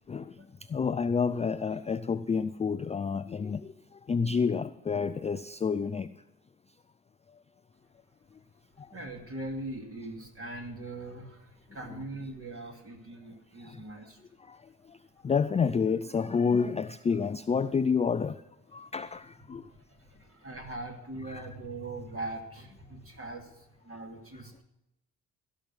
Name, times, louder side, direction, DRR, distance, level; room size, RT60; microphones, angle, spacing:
voice 1, 0.7-3.7 4.1-6.1 8.8-8.9 13.6-13.8 14.5-14.6 15.2-18.4 18.7-19.7 21.3-21.4, left 5 dB, 15° left, 14 dB, 0.3 m, -29 dB
voice 2, 8.9-14.2 19.5-24.6, right 2 dB, 30° right, 2 dB, 2.5 m, -41 dB
16.0 x 6.1 x 7.4 m, 0.90 s
hypercardioid pair, 45°, 43 cm